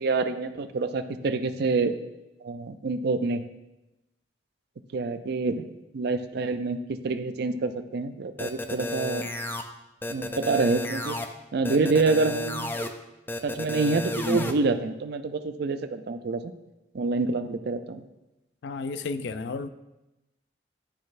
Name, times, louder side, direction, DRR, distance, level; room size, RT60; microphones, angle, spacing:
voice 1, 0.0-1.9 2.4-3.4 4.9-6.8 7.0-9.3 10.1-11.2 11.5-12.8 13.4-16.5 16.9-18.1, right 3 dB, 65° right, 10 dB, 0.4 m, -27 dB
sound 1, 8.4-9.6 10.0-11.3 11.6-12.9 13.3-14.5, left 1 dB, 10° left, 0.4 m, -31 dB
voice 2, 18.6-19.7, left 4 dB, 75° left, 11 dB, 0.4 m, -32 dB
11.5 x 4.1 x 2.5 m, 0.97 s
head